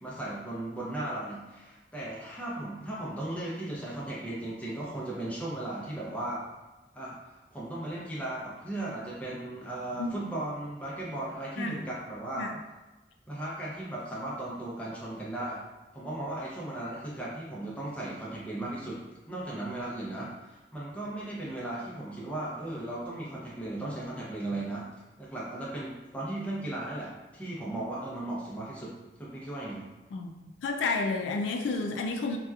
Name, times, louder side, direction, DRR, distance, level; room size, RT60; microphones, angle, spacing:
voice 1, 0.0-6.4 6.9-12.5 13.3-15.6 15.9-24.9 25.2-28.9 29.2-29.9, right 1 dB, 10° left, -6 dB, 0.6 m, -36 dB
voice 2, 30.1-32.4, left 3 dB, 85° left, 3 dB, 0.3 m, -31 dB
2.8 x 2.3 x 2.3 m, 1.1 s
head